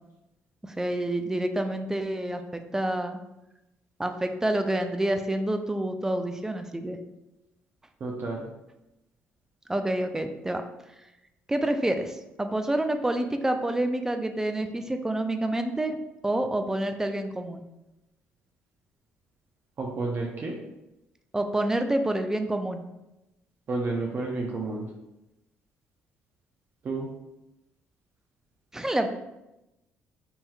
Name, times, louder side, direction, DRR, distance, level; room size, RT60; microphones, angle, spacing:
voice 1, 0.6-3.2 4.0-7.0 9.7-10.6 11.5-16.0 16.2-17.6 21.3-22.8 28.7-29.1, right 1 dB, 10° right, 6 dB, 0.5 m, -28 dB
voice 2, 8.0-8.5 19.8-20.5 23.7-24.9 26.8-27.1, right 3 dB, 45° right, -1 dB, 0.7 m, -30 dB
5.4 x 2.9 x 2.3 m, 0.93 s
supercardioid pair, 70°, 5 cm